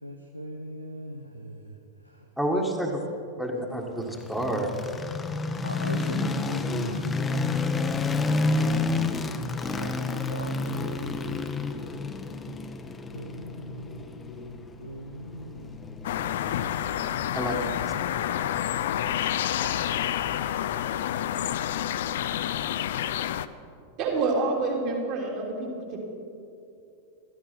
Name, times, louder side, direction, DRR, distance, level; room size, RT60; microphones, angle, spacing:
voice 1, 0.0-1.8 2.0-2.2 5.6-7.4 9.5-11.3 13.1-16.1 18.7-18.8, right 1 dB, 90° right, 3 dB, 0.8 m, -40 dB
voice 2, 2.4-3.0 3.4-4.7 17.3-17.6 17.8-17.9, right 1 dB, 5° right, 0 dB, 1.6 m, -29 dB
sound 1, 4.0-18.1, left 3 dB, 15° left, 0.8 m, -30 dB
sound 2, 16.0-23.5, left 11 dB, 55° left, 0.4 m, -28 dB
voice 3, 24.0-26.0, right 3 dB, 40° right, -1 dB, 3.2 m, -27 dB
15.0 x 13.5 x 4.5 m, 2.6 s
figure-of-eight pair, 90°, 0 cm